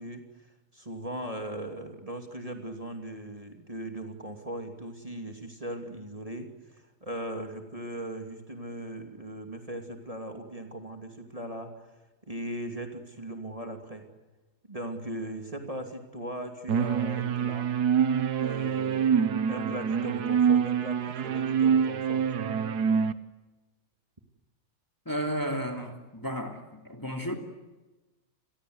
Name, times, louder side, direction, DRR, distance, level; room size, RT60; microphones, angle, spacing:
voice 1, 0.0-11.9 12.2-14.1 14.7-17.7 18.4-22.2, right 1 dB, 20° right, 4 dB, 2.9 m, -39 dB
sound 1, 16.7-23.1, right 7 dB, 80° right, 1.7 m, -26 dB
voice 2, 25.0-27.4, equal, 10° left, 5 dB, 2.8 m, -33 dB
30.0 x 22.5 x 8.0 m, 1.1 s
omnidirectional pair, 1.7 m